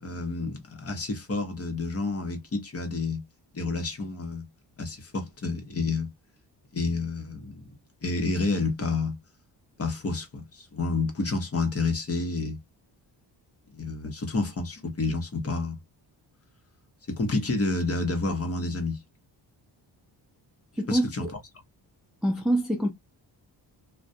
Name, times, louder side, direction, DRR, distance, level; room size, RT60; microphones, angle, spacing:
voice 1, 0.0-3.2 3.5-4.5 4.8-6.1 6.7-7.6 8.0-9.2 9.8-12.6 13.7-15.8 17.1-19.0 20.9-21.3, left 3 dB, 35° left, 0.8 m, -29 dB
voice 2, 20.8-21.3 22.2-22.9, right 1 dB, ahead, 0.4 m, -25 dB
2.3 x 2.2 x 2.5 m
cardioid pair, 105°, 43 cm